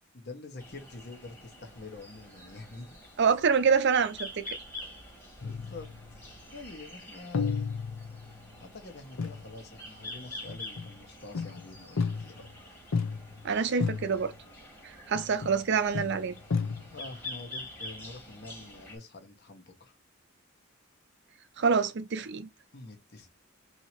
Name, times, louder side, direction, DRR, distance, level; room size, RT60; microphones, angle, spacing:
voice 1, 0.1-2.9 5.4-5.9 6.5-7.7 8.6-12.5 16.9-20.0 22.7-23.3, left 2 dB, 55° left, 1.1 m, -46 dB
sound 1, 0.6-19.0, left 1 dB, 10° left, 1.3 m, -47 dB
voice 2, 3.2-4.6 13.4-14.3 14.8-16.3 21.6-22.5, right 6 dB, 60° right, 0.5 m, -26 dB
sound 2, 5.4-6.2 7.3-8.5 9.2-9.5 10.5-11.0 11.3-12.5 12.9-13.5 13.8-14.4 15.1-15.7 15.9-17.1, left 5 dB, 85° left, 0.7 m, -33 dB
2.9 x 2.8 x 4.4 m
head